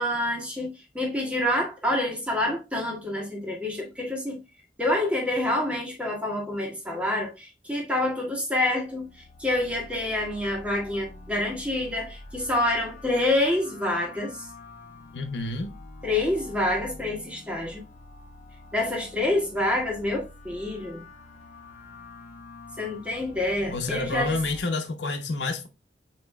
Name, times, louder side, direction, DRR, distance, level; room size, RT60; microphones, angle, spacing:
voice 1, 0.0-4.4 4.8-14.4 16.0-17.8 18.7-21.0 22.8-24.4, left 1 dB, 5° right, 1.7 m, -27 dB
sound 1, 8.7-24.6, left 2 dB, 45° left, 1.0 m, -46 dB
voice 2, 15.1-15.7 23.7-25.7, left 3 dB, 80° left, 0.9 m, -29 dB
7.2 x 3.1 x 2.3 m
head